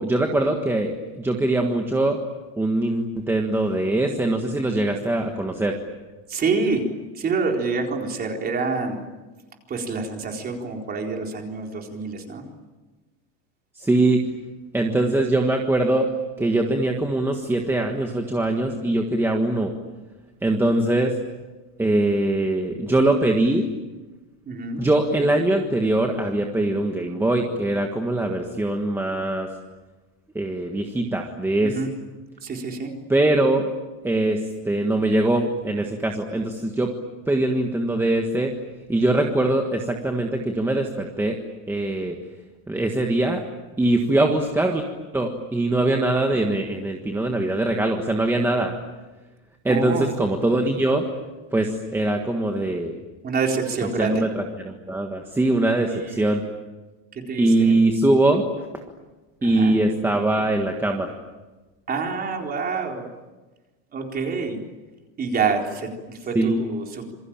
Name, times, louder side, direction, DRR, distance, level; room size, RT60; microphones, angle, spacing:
voice 1, 0.0-2.2 2.6-5.8 13.7-14.3 14.7-16.1 16.4-19.7 20.4-21.2 21.8-23.6 24.8-29.5 30.3-31.7 33.1-33.7 34.0-36.9 37.3-38.5 38.9-41.4 41.7-42.2 42.7-43.4 43.8-44.9 45.1-48.8 49.6-51.0 51.5-53.0 54.0-56.4 57.4-58.4 59.4-61.1 66.3-66.6, right 2 dB, 5° right, 2 dB, 1.5 m, -22 dB
voice 2, 6.3-6.8 7.1-9.0 9.7-12.4 24.4-24.9 31.6-31.9 32.4-32.9 49.7-50.1 53.2-54.3 55.7-56.3 57.1-57.7 59.4-59.7 61.9-63.0 63.9-64.6 65.2-67.1, right 4 dB, 25° right, 2 dB, 4.1 m, -27 dB
27.0 x 23.0 x 8.9 m, 1.2 s
cardioid pair, 165°, 36 cm